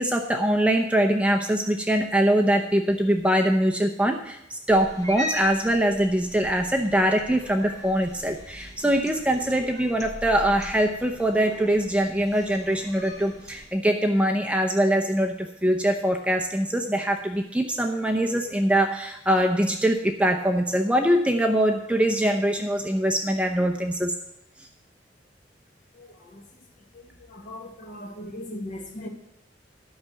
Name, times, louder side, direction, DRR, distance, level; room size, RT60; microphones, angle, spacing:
voice 1, 0.0-24.1, right 1 dB, 5° right, 4 dB, 0.6 m, -23 dB
Cat, 4.7-13.7, left 1 dB, 20° left, 2.1 m, -40 dB
voice 2, 27.3-29.1, left 1 dB, 40° left, 3 dB, 1.6 m, -37 dB
12.0 x 5.9 x 7.7 m, 0.80 s
head